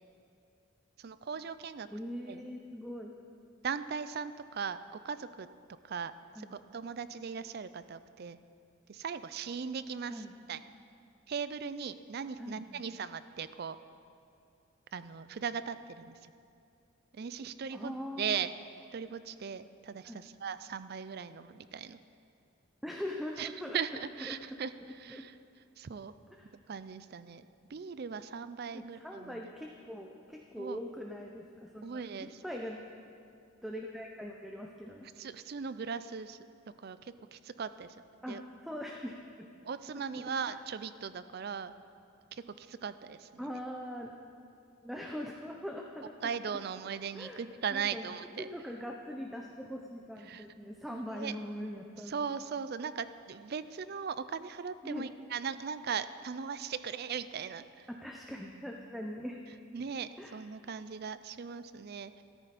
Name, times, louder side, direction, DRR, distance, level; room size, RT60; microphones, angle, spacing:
voice 1, 1.0-1.9 2.3-2.4 3.6-5.5 5.8-6.1 6.4-8.4 8.9-10.6 11.3-13.8 14.9-16.2 17.1-18.5 18.9-22.0 23.4-23.5 23.7-24.7 25.0-25.3 25.8-26.1 26.7-27.4 27.7-29.4 30.6-30.8 31.8-32.4 35.2-36.4 36.8-38.0 38.3-38.4 39.6-41.7 42.3-43.4 46.2-48.5 50.3-50.5 50.9-51.3 52.1-57.9 59.7-62.2, right 6 dB, 50° right, 13 dB, 0.4 m, -38 dB
voice 2, 1.9-3.1 6.3-6.6 10.1-10.3 12.4-12.8 17.7-18.4 20.0-20.2 22.8-23.8 24.2-24.4 25.1-25.2 26.3-26.5 28.7-32.8 33.6-35.1 38.2-39.5 40.2-40.6 43.4-44.2 44.8-46.1 47.1-47.4 47.7-52.2 54.8-55.1 57.9-59.4 60.2-60.4, equal, ahead, 1 dB, 0.6 m, -42 dB
13.5 x 13.5 x 4.1 m, 2.6 s
head